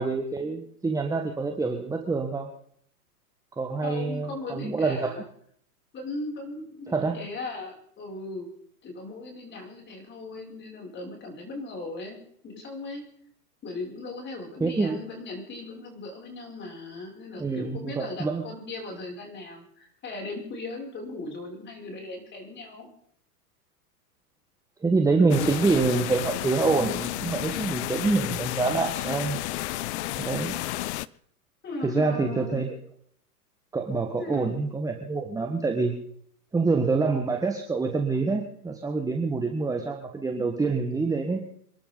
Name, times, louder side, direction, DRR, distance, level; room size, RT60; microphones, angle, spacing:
voice 1, 0.0-2.5 3.6-5.1 6.9-7.2 14.6-15.0 17.3-18.4 24.8-29.4 30.2-30.6 31.8-32.7 33.7-35.9 36.5-41.4, right 4 dB, 5° right, 3 dB, 1.6 m, -26 dB
voice 2, 3.8-5.2 5.9-8.5 8.8-13.0 13.6-22.9 31.6-32.7 34.2-34.6, left 2 dB, 25° left, 0 dB, 6.9 m, -38 dB
sound 1, 25.3-31.1, left 17 dB, 45° left, 0.7 m, -32 dB
28.0 x 12.0 x 4.0 m, 0.64 s
hypercardioid pair, 125°, 47 cm